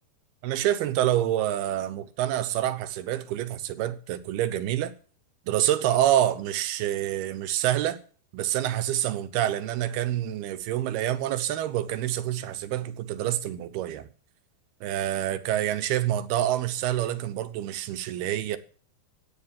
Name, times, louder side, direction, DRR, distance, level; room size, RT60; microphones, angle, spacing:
voice 1, 0.4-4.9 5.5-8.0 8.3-14.1 14.8-18.6, right 12 dB, 75° right, 2.7 m, -27 dB
14.5 x 9.6 x 7.4 m
omnidirectional pair, 4.9 m